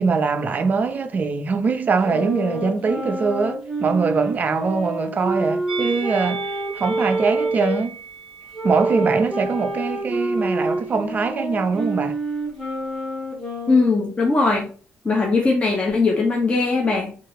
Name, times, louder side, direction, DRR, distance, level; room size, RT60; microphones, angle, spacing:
voice 1, 0.0-6.5 6.7-8.0 8.6-12.2, right 4 dB, 35° right, 0.3 m, -22 dB
sound 1, 2.0-7.8 8.5-14.2, right 2 dB, 5° left, 1.1 m, -27 dB
Musical instrument, 5.7-10.9 11.2-11.4, right 5 dB, 10° right, 1.4 m, -38 dB
voice 2, 13.7-14.7 15.0-17.1, left 3 dB, 25° left, 0.6 m, -19 dB
2.8 x 2.4 x 3.0 m
cardioid pair, 145°, 5 cm